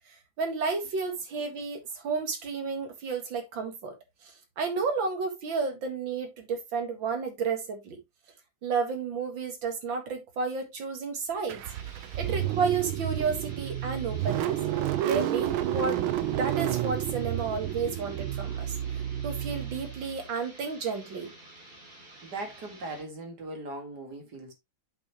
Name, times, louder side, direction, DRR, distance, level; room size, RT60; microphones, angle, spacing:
voice 1, 0.4-3.9 4.2-8.0 8.6-11.6 12.1-14.6 15.0-16.0 16.3-18.8 19.2-21.3, right 5 dB, 70° right, 2.5 m, -31 dB
Car / Engine starting, 11.5-20.3, right 12 dB, 85° right, 1.5 m, -31 dB
sound 1, 11.7-23.1, right 1 dB, 25° right, 4.8 m, -51 dB
voice 2, 22.2-24.5, right 2 dB, 55° right, 2.6 m, -39 dB
7.6 x 6.2 x 3.1 m
omnidirectional pair, 2.2 m